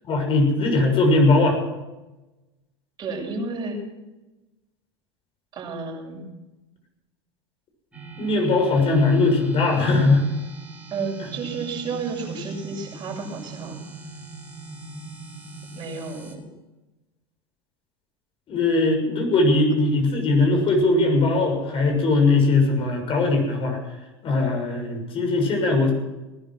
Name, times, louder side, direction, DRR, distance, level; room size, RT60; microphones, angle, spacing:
voice 1, 0.1-1.6 8.2-10.3 18.5-23.8 24.2-25.9, left 2 dB, 40° left, 3 dB, 6.7 m, -20 dB
voice 2, 3.0-3.8 5.5-6.3 10.9-13.8 15.8-16.4, right 4 dB, 30° right, -1 dB, 7.1 m, -31 dB
sound 1, 7.9-16.3, right 4 dB, 10° right, 4.5 m, -40 dB
19.5 x 11.5 x 6.2 m, 1.0 s
hypercardioid pair, 90°, 14 cm